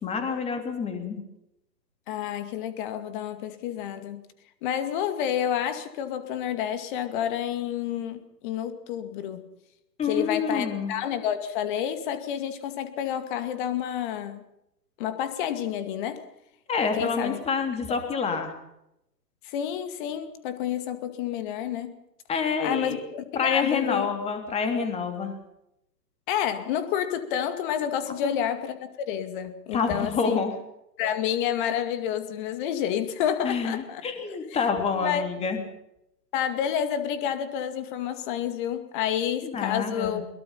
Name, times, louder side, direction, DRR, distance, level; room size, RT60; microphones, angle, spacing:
voice 1, 0.0-1.2 10.0-10.9 16.7-18.5 22.3-23.0 23.3-25.3 28.2-28.3 29.7-30.5 33.4-35.6 39.4-40.2, left 5 dB, 10° left, 5 dB, 3.1 m, -27 dB
voice 2, 2.1-4.2 4.6-9.4 10.1-14.4 15.0-16.2 17.0-17.4 19.4-21.9 22.6-24.1 26.3-30.4 31.0-34.0 35.0-35.2 36.3-40.2, left 9 dB, 30° left, 10 dB, 2.3 m, -29 dB
22.0 x 21.5 x 5.7 m, 0.83 s
figure-of-eight pair, 135°, 49 cm